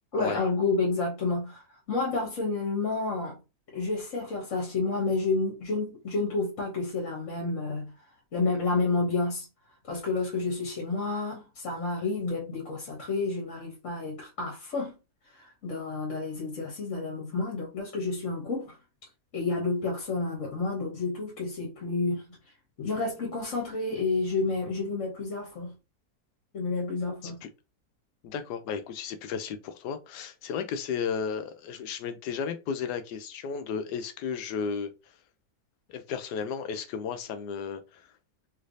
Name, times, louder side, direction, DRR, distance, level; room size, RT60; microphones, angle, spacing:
voice 1, 0.1-3.4 3.7-7.9 8.3-9.4 9.9-15.0 15.3-18.8 19.3-22.4 22.8-25.7 26.5-27.4, left 3 dB, 55° left, 1.3 m, -30 dB
voice 2, 28.2-34.9 35.9-38.0, left 6 dB, 85° left, 1.2 m, -34 dB
3.2 x 3.2 x 2.6 m
omnidirectional pair, 1.7 m